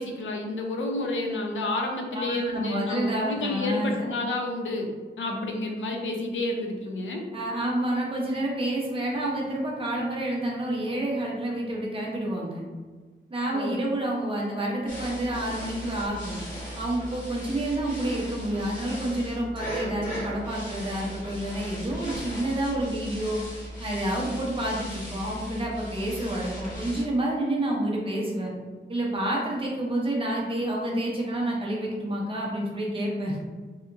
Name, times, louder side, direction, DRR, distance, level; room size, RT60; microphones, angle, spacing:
voice 1, 0.0-4.9 5.2-7.3 13.5-13.8, left 2 dB, 85° left, 2 dB, 0.5 m, -30 dB
voice 2, 2.1-3.9 7.3-12.7 13.3-16.4 16.8-23.4 23.8-28.5 28.9-33.4, right 1 dB, 30° right, -3 dB, 0.6 m, -29 dB
sound 1, 14.9-27.0, equal, 40° left, 1.2 m, -38 dB
2.8 x 2.3 x 2.5 m, 1.4 s
wide cardioid pair, 175°, 19 cm